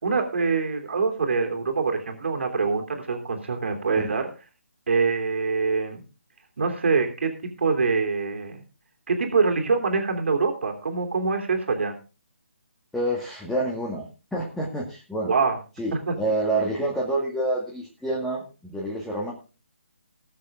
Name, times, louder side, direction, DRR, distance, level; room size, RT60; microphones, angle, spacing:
voice 1, 0.0-4.3 4.9-6.0 6.6-7.3 7.6-8.6 9.1-11.9 15.2-15.6 16.1-16.2, right 4 dB, 55° right, 4 dB, 3.3 m, -24 dB
voice 2, 12.9-14.1 14.3-15.3 15.8-19.3, right 1 dB, 5° left, -3 dB, 2.1 m, -28 dB
20.0 x 7.4 x 3.6 m, 0.32 s
figure-of-eight pair, 150°, 8 cm